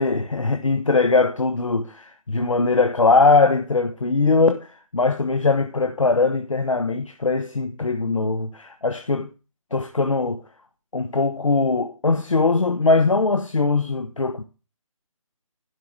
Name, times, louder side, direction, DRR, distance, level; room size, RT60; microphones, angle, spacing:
voice 1, 0.0-9.3 9.7-10.4 10.9-14.4, left 3 dB, 65° left, 1.2 m, -21 dB
11.5 x 5.0 x 7.7 m
figure-of-eight pair, 150°, 18 cm